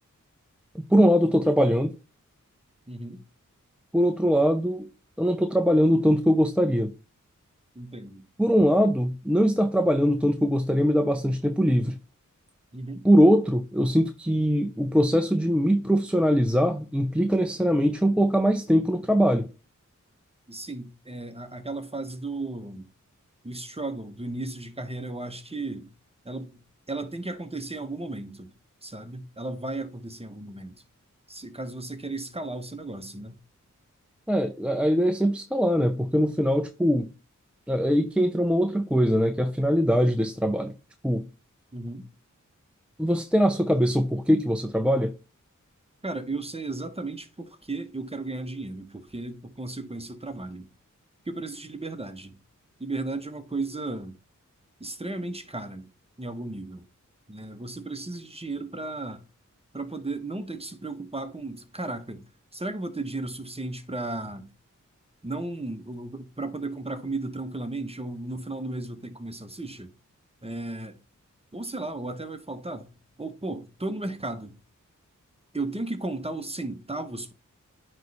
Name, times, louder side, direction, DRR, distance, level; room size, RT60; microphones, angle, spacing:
voice 1, 0.7-1.9 3.9-4.9 5.2-6.9 8.4-12.0 13.0-19.5 34.3-37.1 37.7-40.7 41.0-41.2 43.0-45.1, equal, 5° right, 0.6 m, -22 dB
voice 2, 2.9-3.2 7.7-8.2 12.7-13.0 20.5-22.8 23.4-25.9 26.2-26.6 26.9-28.5 28.8-30.8 31.3-33.4 41.7-42.1 46.0-50.7 51.2-52.4 52.8-54.2 54.8-55.9 56.2-56.8 57.3-59.2 59.7-62.2 62.5-64.5 65.2-69.9 70.4-71.0 71.5-72.9 73.2-74.5 75.5-77.3, right 2 dB, 20° right, 1.1 m, -35 dB
9.1 x 3.3 x 4.1 m
cardioid pair, 40°, 31 cm